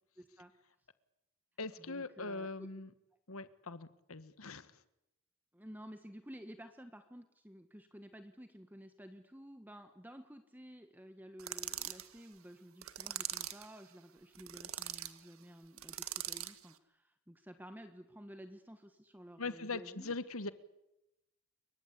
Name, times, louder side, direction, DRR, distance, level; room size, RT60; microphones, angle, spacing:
voice 1, 0.2-0.5 1.8-2.7 5.5-20.1, equal, 10° right, 7 dB, 1.5 m, -53 dB
voice 2, 1.6-2.9 3.3-4.7 19.4-20.5, left 3 dB, 85° left, 13 dB, 1.6 m, -41 dB
sound 1, 11.4-12.1 12.8-13.7 14.4-15.1 15.8-16.6, right 12 dB, 85° right, 1.9 m, -41 dB
29.0 x 23.5 x 8.5 m, 0.87 s
head